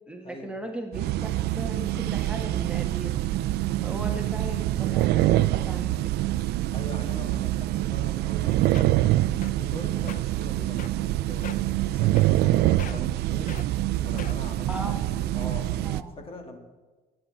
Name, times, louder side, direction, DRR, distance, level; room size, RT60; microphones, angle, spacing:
voice 1, 0.1-1.1 1.5-3.1 3.8-5.9 14.7-15.1 15.8-16.1, right 1 dB, 5° right, 1 dB, 1.5 m, -37 dB
sound 1, 0.9-16.0, right 15 dB, 75° right, 0.5 m, -25 dB
voice 2, 6.7-9.3 9.6-15.8 16.2-16.6, left 2 dB, 35° left, 4 dB, 2.3 m, -43 dB
sound 2, 8.4-8.5 8.7-9.0 9.4-9.7 10.0-10.2 10.8-11.1 11.4-11.7 12.2-12.5 12.8-13.1 13.5-13.7 14.2-14.6 15.2-15.3, left 9 dB, 50° left, 0.7 m, -40 dB
21.0 x 9.0 x 4.2 m, 1.3 s
cardioid pair, 110°, 17 cm